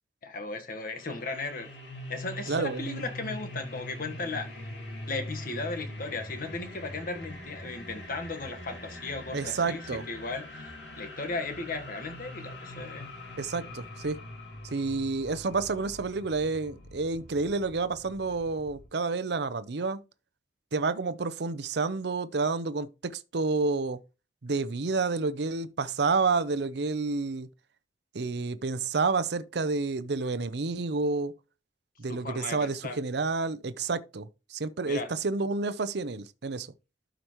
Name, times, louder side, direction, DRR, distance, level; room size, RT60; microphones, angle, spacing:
voice 1, 0.2-1.7 2.1-4.5 5.1-10.5 10.9-13.1 32.1-33.0 34.9-35.1, left 3 dB, 55° left, 1.3 m, -36 dB
sound 1, 0.9-18.9, left 1 dB, 90° left, 2.7 m, -43 dB
voice 2, 2.5-3.0 9.3-10.0 13.4-14.2 14.6-20.0 20.7-24.0 24.4-27.5 28.1-31.3 32.0-36.7, right 4 dB, 65° right, 0.6 m, -29 dB
12.0 x 5.1 x 3.0 m
head